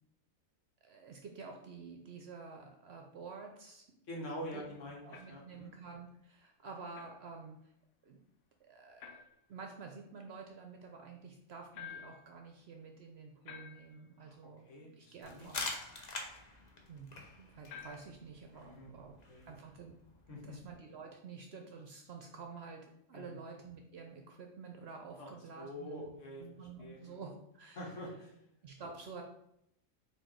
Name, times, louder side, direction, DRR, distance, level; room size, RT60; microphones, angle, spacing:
voice 1, 0.8-4.0 4.5-4.6 5.0-7.6 8.0-8.2 8.6-9.2 9.5-15.7 16.9-17.1 17.4-19.2 19.4-19.9 20.3-27.9 28.6-29.2, right 5 dB, 65° right, 3 dB, 0.7 m, -50 dB
voice 2, 4.1-5.7 14.2-15.5 18.5-18.9 19.3-19.5 20.3-20.6 23.1-23.4 25.2-26.4 26.8-27.2 27.7-28.5 28.8-28.9, equal, 65° left, -1 dB, 1.5 m, -46 dB
sound 1, 5.1-5.5 6.9-7.2 9.0-9.4 11.7-12.3 13.5-14.1 15.6-16.1 17.7-18.2, left 7 dB, 85° left, 1.0 m, -50 dB
crunch and roll, 15.2-20.7, left 3 dB, 45° left, 0.6 m, -46 dB
4.5 x 2.6 x 4.3 m, 0.76 s
omnidirectional pair, 1.4 m